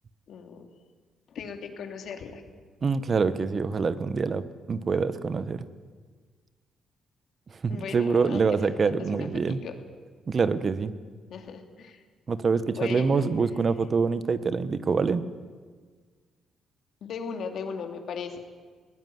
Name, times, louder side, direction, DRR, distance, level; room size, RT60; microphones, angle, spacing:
voice 1, 0.3-0.7 1.3-2.4 7.7-9.7 11.3-12.0 12.7-13.3 17.0-18.4, left 6 dB, 65° left, 5 dB, 2.9 m, -37 dB
voice 2, 2.8-4.4 4.7-5.6 7.6-9.6 10.3-10.9 12.3-15.3, right 5 dB, 40° right, 13 dB, 1.2 m, -25 dB
21.0 x 16.5 x 9.6 m, 1.5 s
cardioid pair, 90°, 0 cm